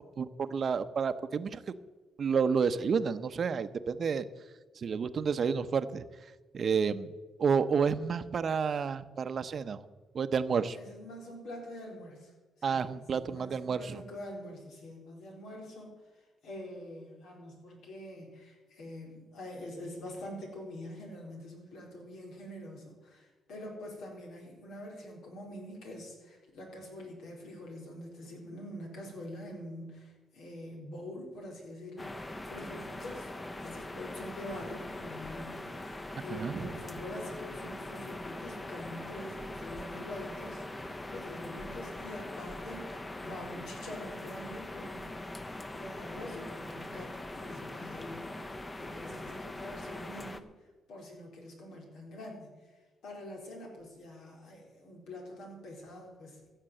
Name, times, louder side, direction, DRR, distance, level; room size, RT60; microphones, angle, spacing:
voice 1, 0.2-1.6 2.2-4.2 4.8-6.0 6.5-9.8 10.1-10.8 12.6-14.0 36.3-36.7, right 6 dB, 50° right, 12 dB, 0.7 m, -30 dB
voice 2, 10.7-33.3 33.6-45.1 45.8-50.5 50.9-56.5, left 1 dB, 80° left, 0 dB, 4.0 m, -45 dB
sound 1, 32.0-50.4, left 1 dB, 20° left, 0.8 m, -42 dB
15.0 x 6.7 x 7.7 m, 1.3 s
cardioid pair, 90°, 0 cm